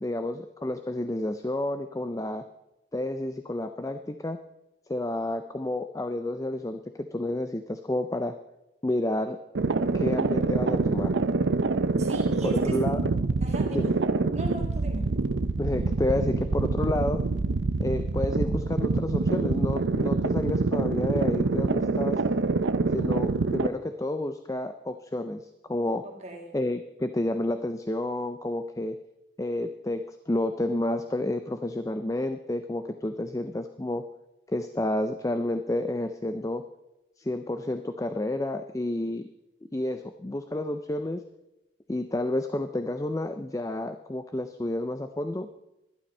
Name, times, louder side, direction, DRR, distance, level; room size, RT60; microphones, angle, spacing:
voice 1, 0.0-2.4 2.9-4.4 4.9-8.4 8.8-9.4 9.9-11.2 12.4-13.1 13.7-13.9 15.0-15.1 15.6-17.2 17.8-22.2 22.9-26.1 26.5-29.0 29.4-34.1 34.5-36.6 37.2-39.3 39.7-41.2 41.9-45.5, left 1 dB, 15° left, 9 dB, 0.4 m, -30 dB
sound 1, 9.5-23.7, right 3 dB, 85° right, 0.6 m, -26 dB
voice 2, 12.0-12.8 13.4-13.9 14.3-15.1 26.0-26.5, right 1 dB, 35° right, 2 dB, 1.9 m, -38 dB
11.5 x 11.5 x 5.4 m, 0.92 s
head